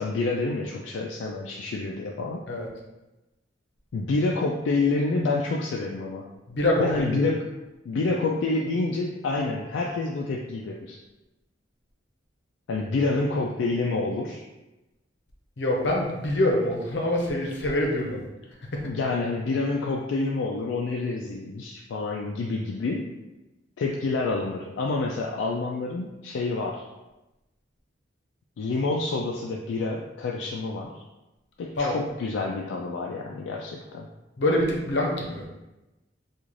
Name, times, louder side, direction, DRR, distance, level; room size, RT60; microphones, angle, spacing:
voice 1, 0.0-2.5 3.9-6.3 6.8-7.5 7.9-11.0 12.7-14.5 18.8-23.1 23.8-26.9 28.6-31.0 31.6-34.1, left 3 dB, 85° left, 0 dB, 0.3 m, -28 dB
voice 2, 6.5-7.3 15.6-18.2 18.7-18.8 31.8-32.0 34.4-35.5, left 1 dB, 65° left, -1 dB, 0.7 m, -25 dB
3.7 x 2.4 x 3.1 m, 1.0 s
head